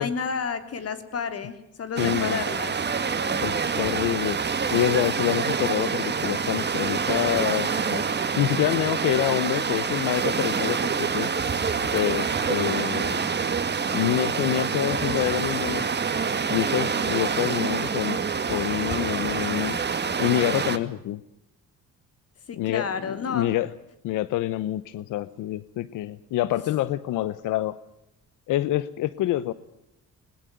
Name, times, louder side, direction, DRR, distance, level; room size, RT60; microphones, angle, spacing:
voice 1, 0.0-2.8 18.8-19.1 22.5-23.5, left 5 dB, 50° left, 9 dB, 3.6 m, -31 dB
voice 2, 2.0-2.4 3.4-8.1 8.4-11.3 11.9-13.3 13.9-15.9 16.5-18.2 18.5-19.8 20.2-21.2 22.6-23.7 24.0-27.8 28.5-29.5, left 14 dB, 90° left, 16 dB, 0.9 m, -27 dB
sound 1, 2.0-20.8, right 5 dB, 35° right, 2.3 m, -26 dB
21.5 x 21.0 x 9.2 m, 0.87 s
cardioid pair, 90°, 30 cm